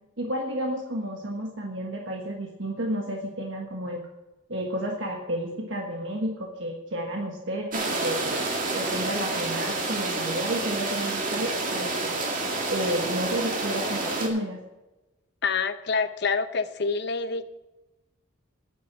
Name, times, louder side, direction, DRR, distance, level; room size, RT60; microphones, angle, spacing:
voice 1, 0.2-4.0 4.5-8.4 8.7-14.6, right 1 dB, 65° right, 1 dB, 1.4 m, -31 dB
sound 1, 7.7-14.3, right 2 dB, 40° right, 2.1 m, -29 dB
voice 2, 15.4-17.4, left 4 dB, 55° left, 11 dB, 0.8 m, -27 dB
10.5 x 8.2 x 7.2 m, 1.1 s
head